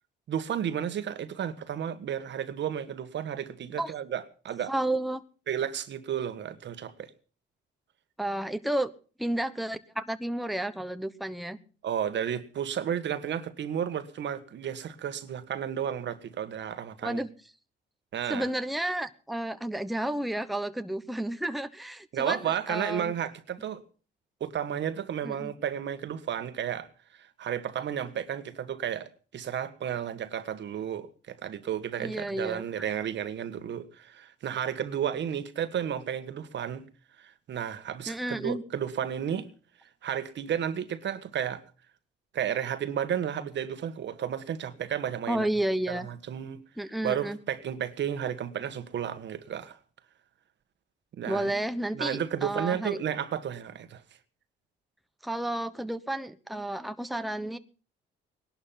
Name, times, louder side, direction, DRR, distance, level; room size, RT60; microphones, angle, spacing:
voice 1, 0.3-4.7 5.5-6.9 11.8-17.2 18.1-18.5 22.1-23.8 24.4-26.9 27.4-36.8 37.2-39.5 40.0-41.6 42.3-45.5 45.9-46.6 47.0-49.8 51.1-51.5 51.9-54.0, right 9 dB, 65° right, 1.6 m, -32 dB
voice 2, 4.7-5.2 8.2-8.9 9.2-11.6 17.0-17.3 18.3-23.1 25.2-25.5 32.0-32.7 38.1-38.6 39.0-39.1 45.3-46.1 46.8-47.4 51.3-53.0 55.2-57.6, right 1 dB, ahead, 1.0 m, -31 dB
19.0 x 11.5 x 5.8 m
cardioid pair, 90°, 20 cm